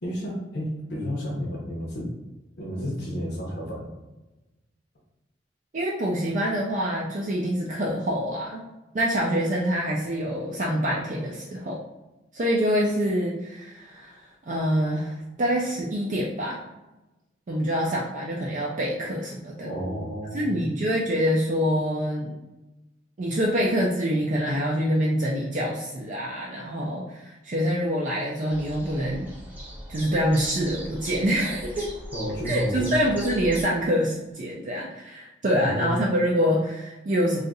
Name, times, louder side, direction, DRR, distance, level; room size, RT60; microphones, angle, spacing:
voice 1, 0.0-2.1 2.6-3.9 19.6-20.6 32.1-33.0 35.5-36.0, equal, 65° left, -4 dB, 0.7 m, -31 dB
voice 2, 5.7-8.6 8.9-11.8 12.3-16.6 17.5-19.7 20.3-22.3 23.2-29.3 29.9-31.9 32.4-37.4, equal, 45° right, -3 dB, 0.4 m, -26 dB
sound 1, 28.5-33.6, equal, 10° right, 0.9 m, -40 dB
2.6 x 2.4 x 4.0 m, 1.0 s
head